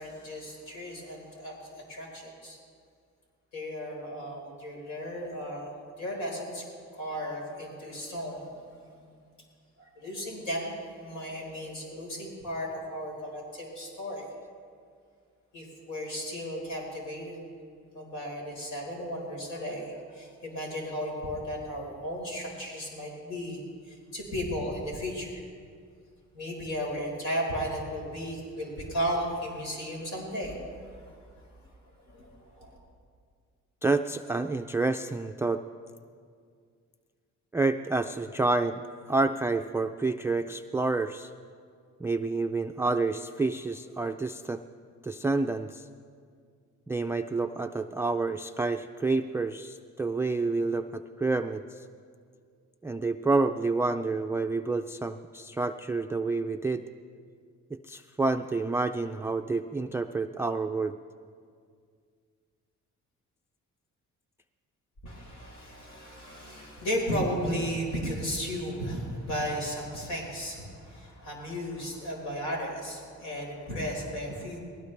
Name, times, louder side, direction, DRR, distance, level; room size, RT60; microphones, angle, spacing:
voice 1, 0.0-1.6 1.9-2.6 3.5-6.6 6.9-9.1 9.8-14.3 15.5-17.4 17.9-23.6 23.9-25.4 26.3-31.1 32.0-32.7 65.0-74.6, equal, 85° left, -2 dB, 4.3 m, -35 dB
voice 2, 33.8-35.6 37.5-38.8 39.1-41.3 42.0-44.6 45.0-45.9 46.9-51.8 52.8-56.8 57.7-61.0, right 3 dB, 10° right, 6 dB, 0.3 m, -29 dB
19.5 x 17.0 x 3.3 m, 2.1 s
cardioid pair, 90°, 30 cm